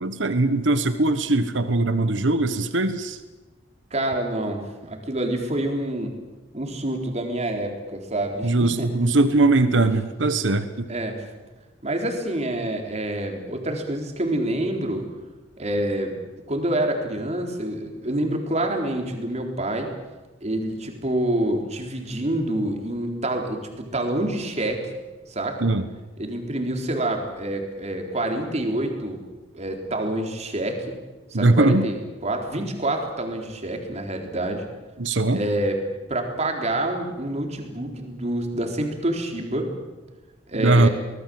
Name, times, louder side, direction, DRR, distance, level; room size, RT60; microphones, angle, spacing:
voice 1, 0.0-3.2 8.4-10.9 25.6-25.8 31.3-31.8 35.0-35.4 40.6-40.9, right 2 dB, 80° right, 11 dB, 1.3 m, -20 dB
voice 2, 3.9-6.1 6.5-8.9 10.9-11.2 11.8-15.1 15.6-16.1 16.5-19.9 20.4-24.8 25.3-25.6 26.2-29.2 29.5-30.8 31.3-34.6 35.3-35.8 36.1-39.7 40.5-40.9, right 1 dB, 35° right, 3 dB, 4.0 m, -27 dB
24.5 x 20.0 x 7.8 m, 1.2 s
head